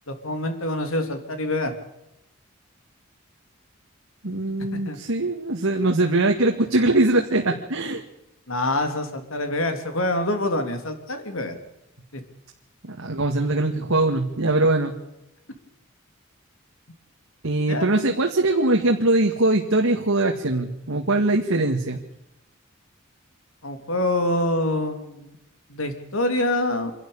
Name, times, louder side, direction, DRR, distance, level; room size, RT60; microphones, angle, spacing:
voice 1, 0.1-1.7 4.8-5.0 8.5-11.6 12.1-12.2 17.7-17.9 23.6-25.3 25.7-26.9, left 1 dB, 75° left, 7 dB, 3.3 m, -25 dB
voice 2, 4.2-8.0 12.8-14.9 17.4-22.0, right 2 dB, 75° right, 2 dB, 2.0 m, -22 dB
27.0 x 12.0 x 8.7 m, 0.87 s
head